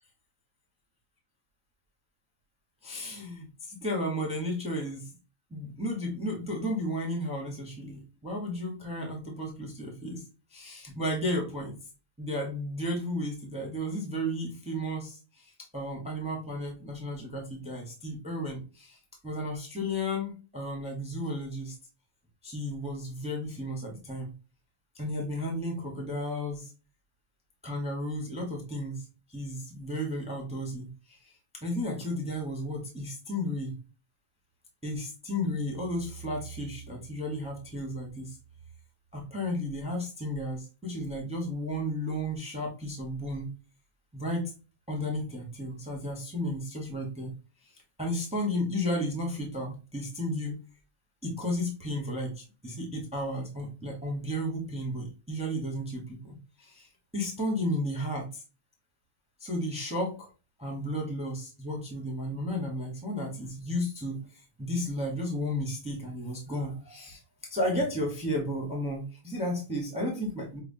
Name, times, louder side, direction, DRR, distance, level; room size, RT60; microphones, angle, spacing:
voice 1, 2.8-5.1 5.5-10.2 10.5-11.8 12.2-19.0 19.2-21.7 22.4-24.3 24.9-26.7 27.6-31.3 31.6-33.7 34.8-38.4 39.1-43.5 44.1-44.5 44.9-47.3 47.6-47.7 48.0-50.6 51.2-58.4 59.4-60.3 60.6-67.2 67.5-70.6, left 1 dB, 5° right, 0 dB, 0.8 m, -33 dB
5.4 x 2.3 x 2.6 m, 0.33 s
omnidirectional pair, 1.4 m